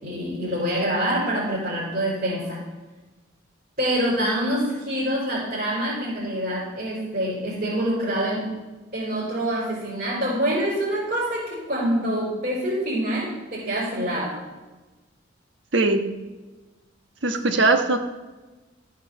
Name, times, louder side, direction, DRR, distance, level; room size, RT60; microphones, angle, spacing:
voice 1, 0.0-2.6 3.8-8.5 8.9-14.4, right 1 dB, 45° right, -10 dB, 4.4 m, -26 dB
voice 2, 15.7-16.0 17.2-18.0, right 3 dB, 75° right, 6 dB, 1.2 m, -20 dB
13.5 x 6.6 x 6.7 m, 1.2 s
head